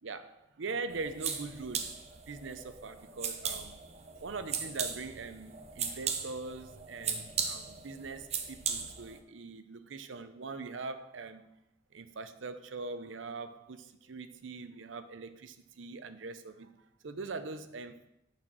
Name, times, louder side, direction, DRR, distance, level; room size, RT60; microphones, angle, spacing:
voice 1, 0.0-3.8 4.2-11.4 11.9-18.1, right 3 dB, 85° right, 11 dB, 0.6 m, -42 dB
sound 1, 0.9-9.2, right 6 dB, 35° right, 0.7 m, -38 dB
8.6 x 4.4 x 6.1 m, 0.86 s
head